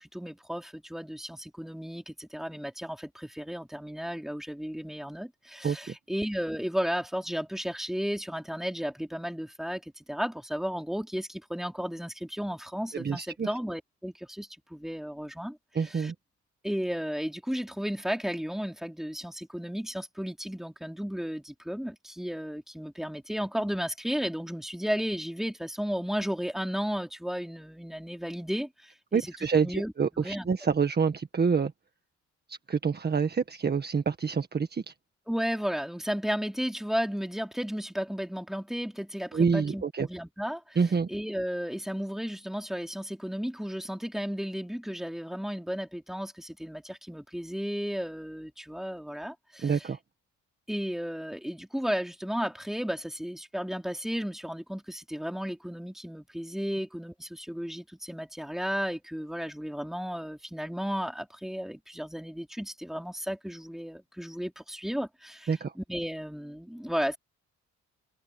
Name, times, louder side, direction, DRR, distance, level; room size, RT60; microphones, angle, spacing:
voice 1, 0.0-16.1 16.6-29.2 29.6-30.5 35.3-40.8 41.1-49.9 50.7-67.2, equal, ahead, 4.1 m, -34 dB
voice 2, 12.9-13.5 15.8-16.1 29.1-31.7 32.5-34.9 39.3-40.1 40.8-41.1 49.6-50.0 65.5-65.7, right 5 dB, 35° right, 1.6 m, -27 dB
open air
cardioid pair, 90°, 30 cm